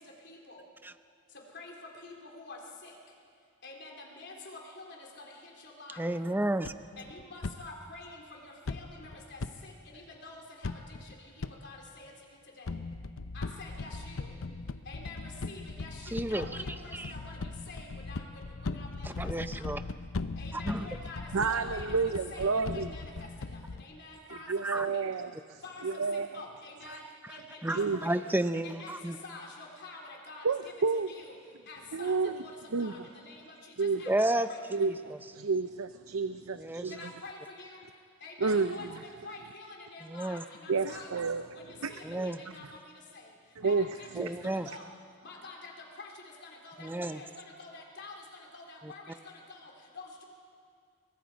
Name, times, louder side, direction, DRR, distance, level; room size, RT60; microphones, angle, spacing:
voice 1, 0.2-0.6 1.5-1.7 2.0-2.9 3.6-5.3 5.6-6.0 7.0-10.7 11.2-12.1 12.6-12.7 13.3-14.3 14.9-19.3 19.6-19.7 20.4-23.3 23.8-24.5 24.9-25.0 25.6-27.0 27.3-27.8 28.1-28.2 28.6-30.4 31.1-31.4 31.7-32.5 32.8-34.9 36.9-37.8 38.2-41.1 41.5-42.6 43.1-43.3 43.6-44.1 44.7-44.9 45.2-45.7 46.0-46.1 46.4-47.3 47.6-48.2 48.5-49.1 49.5-50.2, left 3 dB, 55° left, 0 dB, 4.0 m, -47 dB
voice 2, 6.0-6.7 16.1-16.4 16.9-17.1 19.0-19.8 20.5-20.9 24.6-24.9 26.9-27.0 27.2-27.4 27.6-29.2 34.1-35.2 36.6-36.9 40.0-40.4 42.0-42.4 44.2-44.7 46.8-47.2 48.8-48.9, right 1 dB, 10° right, 10 dB, 0.6 m, -32 dB
sound 1, 6.6-7.5 8.7-9.5 10.6-11.1 11.4-11.5 12.7-23.8, left 3 dB, 75° left, 0.7 m, -39 dB
voice 3, 21.3-22.9 24.3-26.3 27.7-28.0 30.4-31.1 31.9-32.3 32.7-32.9 33.8-34.0 34.7-37.1 38.4-38.7 40.7-41.4 41.8-42.3 43.6-43.9 44.1-44.4, right 4 dB, 85° right, 10 dB, 0.6 m, -30 dB
28.5 x 23.0 x 5.2 m, 2.2 s
head